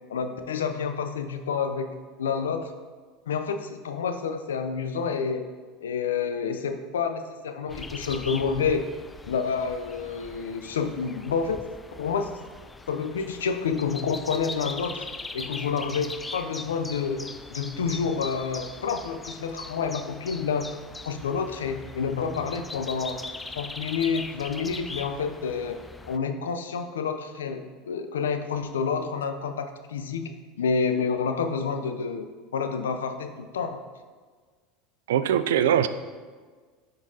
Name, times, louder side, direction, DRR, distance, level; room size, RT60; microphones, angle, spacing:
voice 1, 0.1-2.7 3.3-5.5 5.8-8.9 9.2-11.6 12.0-12.3 12.9-15.1 15.3-20.8 21.0-23.2 23.5-25.8 26.1-30.3 30.6-32.3 32.5-33.8, left 5 dB, 90° left, 7 dB, 0.5 m, -29 dB
sound 1, 7.7-26.2, left 3 dB, 15° left, 0.3 m, -41 dB
voice 2, 35.1-35.9, right 9 dB, 80° right, 12 dB, 0.3 m, -21 dB
10.5 x 3.8 x 2.7 m, 1.5 s
hypercardioid pair, 90°, 0 cm